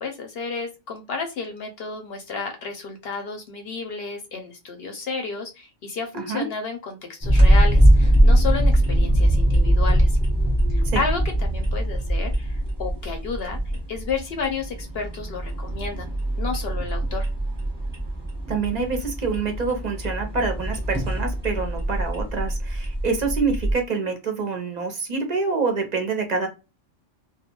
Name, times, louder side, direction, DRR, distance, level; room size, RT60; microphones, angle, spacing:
voice 1, 0.0-10.2 10.7-13.6 13.9-16.1 16.4-17.3, left 5 dB, 60° left, 3 dB, 0.7 m, -31 dB
voice 2, 6.1-6.5 10.8-11.0 18.5-26.5, right 4 dB, 50° right, 4 dB, 0.6 m, -26 dB
sound 1, 7.2-23.7, right 1 dB, 20° right, 0.8 m, -21 dB
2.3 x 2.2 x 2.8 m, 0.28 s
omnidirectional pair, 1.3 m